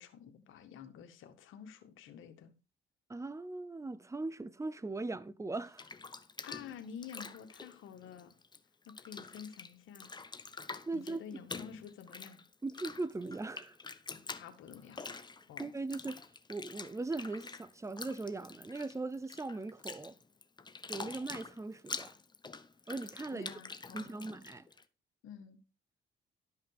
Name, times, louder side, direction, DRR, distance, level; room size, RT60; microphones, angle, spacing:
voice 1, 0.0-2.5 6.4-8.3 8.9-10.1 10.9-12.4 14.3-15.1 15.5-15.7 23.3-24.3 25.2-25.6, left 8 dB, 85° left, 1.9 m, -50 dB
voice 2, 3.1-5.8 10.9-11.2 12.6-13.8 15.6-16.2 16.5-20.1 20.9-22.1 22.9-23.5 23.9-24.7, right 3 dB, 15° right, 0.8 m, -39 dB
Bathtub (filling or washing), 5.5-8.6 8.9-24.8, left 4 dB, 20° left, 1.0 m, -47 dB
12.5 x 5.7 x 5.1 m
cardioid pair, 90°, 20 cm